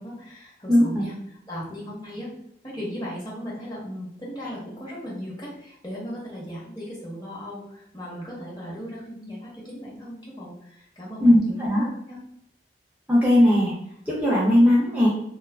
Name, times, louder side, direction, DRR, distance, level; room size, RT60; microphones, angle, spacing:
voice 1, 0.0-2.3 2.6-12.2, equal, 25° left, -6 dB, 0.8 m, -37 dB
voice 2, 0.7-1.0 11.2-11.8 13.1-13.7 14.1-15.1, left 1 dB, 10° right, -6 dB, 0.4 m, -18 dB
2.4 x 2.3 x 2.2 m, 0.73 s
head